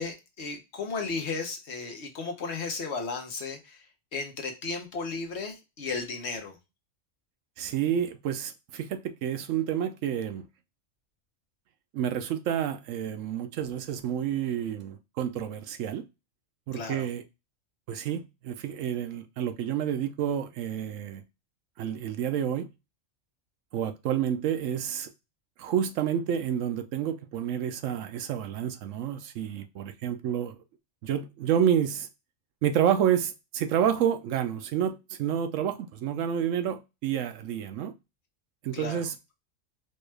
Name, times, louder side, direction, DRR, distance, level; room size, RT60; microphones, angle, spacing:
voice 1, 0.0-3.9 4.1-6.6 16.7-17.1 38.7-39.0, left 4 dB, 60° left, 1.0 m, -34 dB
voice 2, 7.6-10.5 11.9-16.0 16.7-17.2 17.9-21.2 21.8-22.7 23.7-25.1 25.6-30.6 31.0-32.1 32.6-37.9 38.6-39.1, right 9 dB, 75° right, 0.9 m, -29 dB
4.4 x 2.3 x 3.1 m
omnidirectional pair, 1.4 m